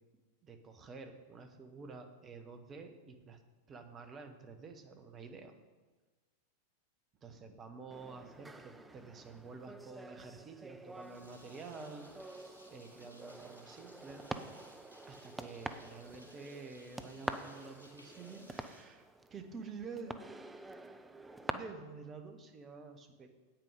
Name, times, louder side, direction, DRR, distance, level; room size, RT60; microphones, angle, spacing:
voice 1, 0.4-3.4 3.7-5.5 7.2-14.2 15.0-20.1 21.4-23.3, right 4 dB, 25° right, 6 dB, 1.2 m, -49 dB
sound 1, 7.9-21.5, right 2 dB, 10° right, 0.6 m, -47 dB
sound 2, 10.9-19.7, left 1 dB, 85° right, 1.9 m, -61 dB
9.0 x 9.0 x 5.0 m, 1.3 s
figure-of-eight pair, 90°, 0 cm